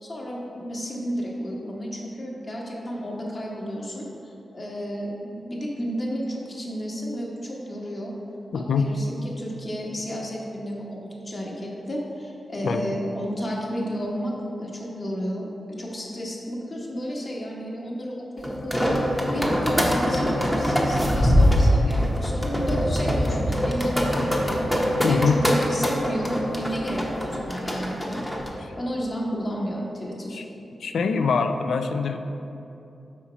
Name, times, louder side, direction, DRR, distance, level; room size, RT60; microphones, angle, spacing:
voice 1, 0.0-8.1 8.5-14.3 14.6-28.2 28.5-30.4, equal, 35° left, -3 dB, 1.0 m, -32 dB
voice 2, 8.5-8.9 12.6-12.9 25.0-25.4 30.3-30.4 30.8-32.2, left 5 dB, 90° left, 7 dB, 0.3 m, -24 dB
sound 1, 18.4-28.5, equal, 5° left, 0.7 m, -23 dB
5.8 x 4.2 x 4.9 m, 2.8 s
wide cardioid pair, 130°, 0 cm